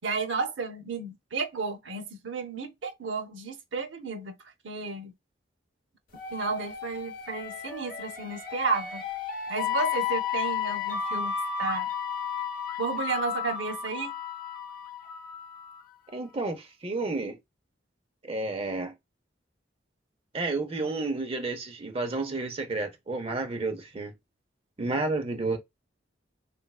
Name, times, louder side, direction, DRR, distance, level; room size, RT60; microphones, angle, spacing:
voice 1, 0.0-4.4 4.6-5.1 6.3-9.0 9.5-11.9 12.8-14.1, right 4 dB, 80° right, 0.7 m, -32 dB
sound 1, 6.1-15.8, left 8 dB, 50° left, 0.9 m, -33 dB
voice 2, 16.1-17.4 18.2-18.9 20.3-24.1 24.8-25.6, right 3 dB, 30° right, 0.6 m, -31 dB
3.2 x 2.5 x 2.3 m
head